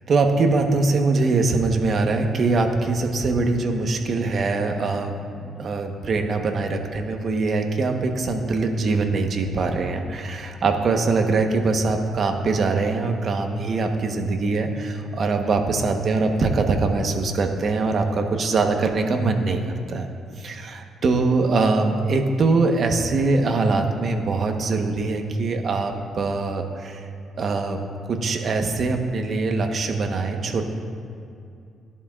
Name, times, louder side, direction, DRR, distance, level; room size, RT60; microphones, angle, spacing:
voice 1, 0.1-5.1 5.6-19.6 19.9-20.1 20.4-27.0 27.4-27.8 28.1-30.6, right 3 dB, 50° right, 4 dB, 1.1 m, -22 dB
17.0 x 11.0 x 2.5 m, 2.5 s
cardioid pair, 90°, 0 cm